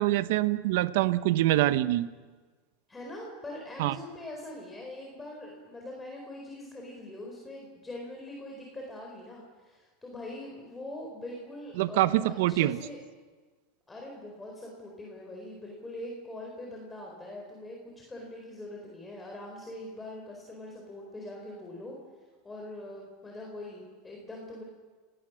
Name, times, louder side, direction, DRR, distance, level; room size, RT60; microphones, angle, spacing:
voice 1, 0.0-2.1 3.8-3.9 11.8-12.8, right 15 dB, 75° right, 14 dB, 0.9 m, -25 dB
voice 2, 2.9-12.2 12.5-13.0 13.9-22.0 22.4-24.6, left 1 dB, 10° left, -1 dB, 4.5 m, -42 dB
29.5 x 18.0 x 6.3 m, 1.4 s
supercardioid pair, 130°, 0 cm